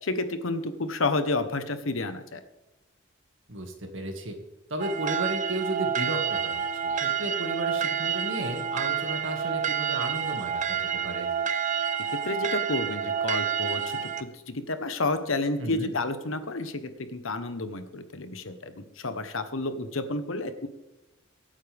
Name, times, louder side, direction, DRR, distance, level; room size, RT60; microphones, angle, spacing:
voice 1, 0.0-2.4 12.2-16.8 17.1-20.7, left 2 dB, 85° left, 10 dB, 1.2 m, -30 dB
voice 2, 3.5-4.4 4.7-10.8 11.0-11.3 15.6-15.9, right 1 dB, 70° right, 4 dB, 2.2 m, -34 dB
sound 1, 4.8-14.2, right 7 dB, 40° right, 0.7 m, -29 dB
24.0 x 8.8 x 3.6 m, 1.0 s
head